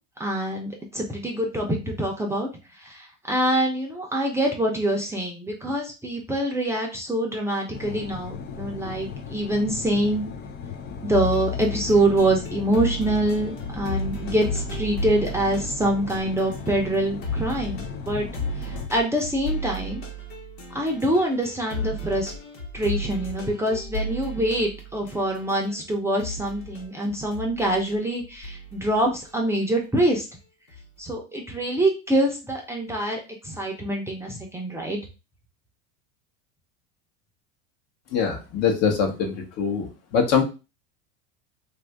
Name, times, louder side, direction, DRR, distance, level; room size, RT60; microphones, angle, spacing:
voice 1, 0.2-2.5 2.8-10.2 11.0-18.3 18.7-20.0 20.7-22.3 22.7-30.2 31.0-35.0, right 1 dB, 10° right, 0 dB, 0.7 m, -25 dB
sound 1, 7.7-18.9, left 6 dB, 30° left, 0.4 m, -37 dB
sound 2, 11.1-17.0 17.2-25.8 26.2-29.3 30.7-31.0, left 1 dB, 85° left, 1.3 m, -34 dB
voice 2, 38.1-40.4, left 6 dB, 50° left, 3 dB, 1.0 m, -23 dB
2.7 x 2.6 x 3.4 m, 0.29 s
supercardioid pair, 115°, 32 cm